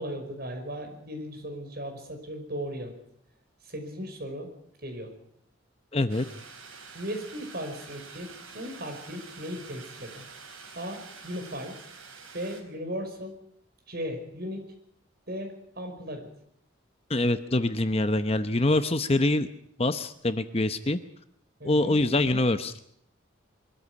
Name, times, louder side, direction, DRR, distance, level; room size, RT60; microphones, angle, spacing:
voice 1, 0.0-2.9 3.6-4.5 4.8-5.1 6.9-10.2 10.7-11.8 12.3-13.3 13.9-14.6 15.3-16.3 21.6-22.0, equal, 50° right, 4 dB, 5.4 m, -37 dB
voice 2, 5.9-6.3 17.1-19.5 19.8-21.0 21.6-22.7, left 2 dB, 30° left, 11 dB, 0.8 m, -25 dB
sound 1, 6.1-12.6, right 5 dB, 85° right, 4.7 m, -47 dB
23.0 x 14.0 x 9.7 m, 0.71 s
head